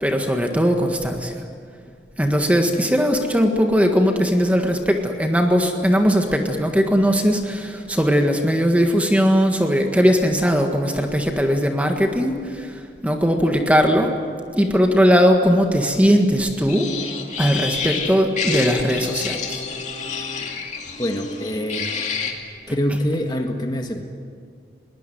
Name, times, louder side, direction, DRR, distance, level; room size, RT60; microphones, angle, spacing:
voice 1, 0.0-1.4 2.2-14.1 14.6-16.9 17.4-19.6, equal, 10° right, 3 dB, 1.6 m, -19 dB
sound 1, 16.7-22.3, left 5 dB, 40° left, 2.4 m, -28 dB
voice 2, 21.0-21.9 22.7-24.0, equal, 25° left, 4 dB, 1.7 m, -25 dB
21.5 x 19.5 x 9.3 m, 2.1 s
head